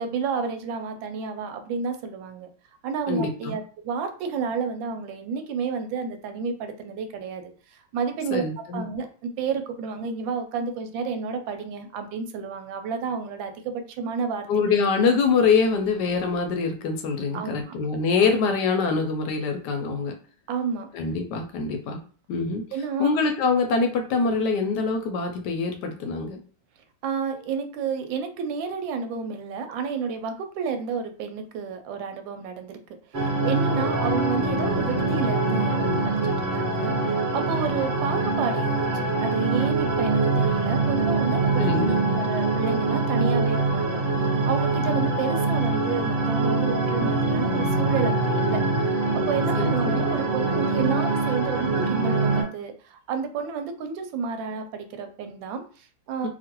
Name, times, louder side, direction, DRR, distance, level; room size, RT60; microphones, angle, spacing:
voice 1, 0.0-2.5 2.8-7.4 7.7-14.7 17.3-17.8 18.2-18.4 20.5-20.9 22.7-23.1 27.0-32.8 33.1-41.8 42.1-56.3, right 5 dB, 85° right, 7 dB, 1.3 m, -31 dB
voice 2, 3.1-3.6 8.3-8.8 14.5-20.1 20.9-22.0 22.3-22.6 23.0-26.4 41.6-42.0 49.6-50.1, left 4 dB, 75° left, 5 dB, 1.1 m, -24 dB
sound 1, 33.1-52.4, right 3 dB, 35° right, 0.8 m, -24 dB
3.0 x 2.5 x 2.9 m, 0.41 s
omnidirectional pair, 2.0 m